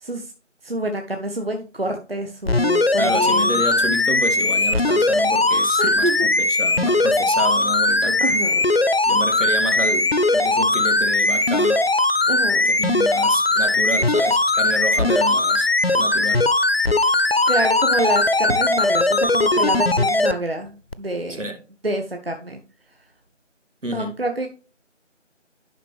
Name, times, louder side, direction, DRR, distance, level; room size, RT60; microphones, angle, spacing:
voice 1, 0.6-3.6 5.8-6.3 8.2-8.6 12.3-12.7 17.0-17.1 17.5-21.4 21.8-22.6 23.8-24.5, right 1 dB, 50° right, 1.0 m, -27 dB
sound 1, 2.5-20.3 20.9-21.0, left 2 dB, 55° left, 0.5 m, -19 dB
voice 2, 3.0-8.2 9.1-11.8 12.6-15.7 16.0-16.4 21.3-21.6 23.8-24.2, right 1 dB, 75° right, 2.2 m, -29 dB
11.0 x 5.4 x 3.3 m
figure-of-eight pair, 175°, 37 cm